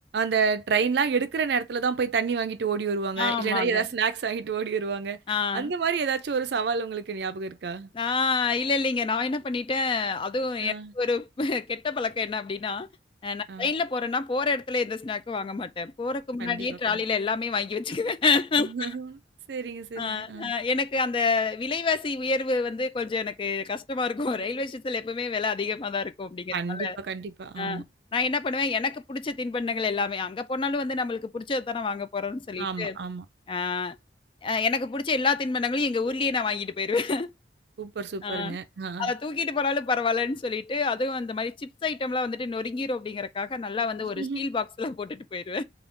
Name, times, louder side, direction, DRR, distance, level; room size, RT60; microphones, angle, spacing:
voice 1, 0.1-5.2 5.5-7.9 10.6-10.9 13.5-13.7 16.4-17.0 18.6-19.2 19.5-20.5 26.5-27.8 32.6-33.3 37.8-39.1 44.2-44.4, right 5 dB, 60° right, 0.4 m, -29 dB
voice 2, 3.2-3.8 5.3-5.7 7.9-12.9 13.2-19.0 20.0-27.0 27.6-27.8 28.1-33.0 33.5-34.0 34.4-37.3 38.2-38.6 39.0-45.6, left 4 dB, 30° left, 0.3 m, -28 dB
3.5 x 2.4 x 3.7 m
head